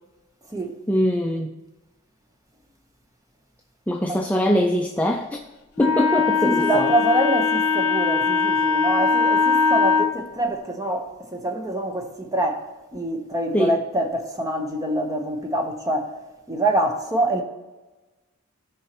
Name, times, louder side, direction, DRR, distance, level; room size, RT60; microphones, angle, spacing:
voice 1, 0.9-1.5 3.9-5.4 5.8-6.9 13.5-13.8, equal, 5° left, 0.4 m, -22 dB
Wind instrument woodwind instrument, 5.8-10.1, left 4 dB, 75° left, 0.9 m, -20 dB
voice 2, 6.4-16.2 16.5-17.4, right 1 dB, 15° right, 1.0 m, -25 dB
16.0 x 5.4 x 3.0 m
head